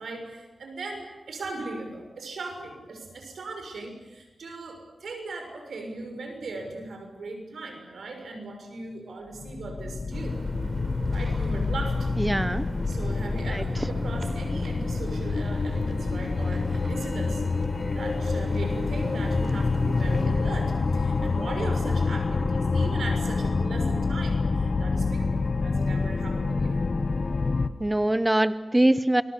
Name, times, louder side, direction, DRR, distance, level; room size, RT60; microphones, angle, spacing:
voice 1, 0.0-10.7 11.1-12.1 12.9-17.4 17.9-26.8, right 3 dB, 85° right, 4 dB, 6.7 m, -38 dB
sound 1, 9.3-27.7, left 4 dB, 45° left, 1.4 m, -27 dB
sound 2, 10.1-20.3, right 1 dB, 40° right, 4.2 m, -39 dB
voice 2, 12.2-12.7 13.5-13.6 27.8-29.2, right 1 dB, 15° right, 14 dB, 0.9 m, -23 dB
29.0 x 22.0 x 8.4 m, 1.1 s
wide cardioid pair, 85°, 0 cm